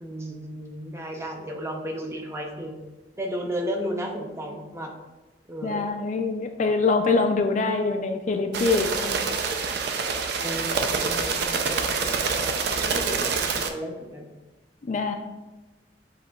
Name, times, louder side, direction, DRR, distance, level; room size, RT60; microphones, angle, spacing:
voice 1, 0.0-2.8 3.2-4.9 5.5-5.9 10.4-14.3, equal, 15° right, 1 dB, 0.6 m, -34 dB
voice 2, 5.6-9.2 14.8-15.2, left 3 dB, 45° left, 5 dB, 0.4 m, -24 dB
sound 1, 8.5-13.7, right 5 dB, 65° right, 0.4 m, -26 dB
7.6 x 2.9 x 2.3 m, 1.1 s
head